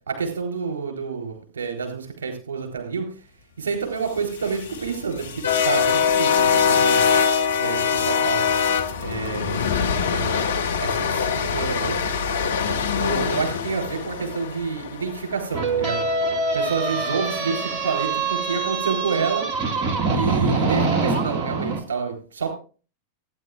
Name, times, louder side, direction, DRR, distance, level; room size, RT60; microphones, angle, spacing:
voice 1, 0.1-3.1 3.6-7.1 7.6-8.5 9.0-9.6 10.1-12.1 12.7-16.0 16.5-19.5 20.1-22.5, right 5 dB, 65° right, 3 dB, 3.8 m, -29 dB
sound 1, 4.2-16.4, left 6 dB, 65° left, 0.9 m, -23 dB
sound 2, 15.5-21.8, right 3 dB, 40° right, 1.9 m, -24 dB
17.5 x 9.7 x 2.5 m, 0.36 s
figure-of-eight pair, 90°, 0 cm